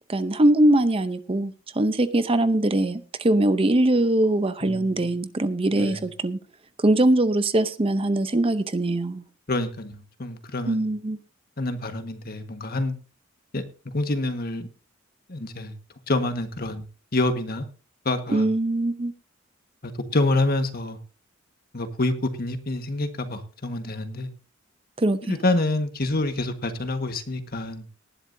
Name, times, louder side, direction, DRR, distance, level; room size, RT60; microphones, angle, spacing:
voice 1, 0.1-6.4 6.8-9.2 10.7-11.2 18.3-19.1 25.0-25.4, right 1 dB, 30° right, 0.7 m, -22 dB
voice 2, 4.6-5.1 5.7-6.0 9.5-10.9 11.6-12.9 13.5-13.6 13.9-14.7 15.3-15.7 16.1-16.8 17.1-17.7 18.0-18.5 19.8-21.0 21.7-24.3 25.3-27.8, left 2 dB, 50° left, 1.6 m, -27 dB
18.5 x 11.5 x 2.7 m
head